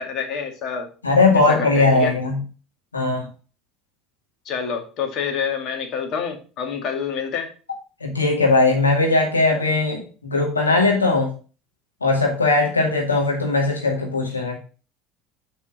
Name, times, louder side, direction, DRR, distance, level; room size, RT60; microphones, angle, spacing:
voice 1, 0.0-0.9 1.5-2.1 4.5-7.5, left 6 dB, 50° left, 4 dB, 1.9 m, -27 dB
voice 2, 1.0-2.4 2.9-3.3 8.0-11.3 12.0-14.6, left 3 dB, 90° left, 0 dB, 2.1 m, -19 dB
7.4 x 4.1 x 5.2 m, 0.36 s
figure-of-eight pair, 70°, 0 cm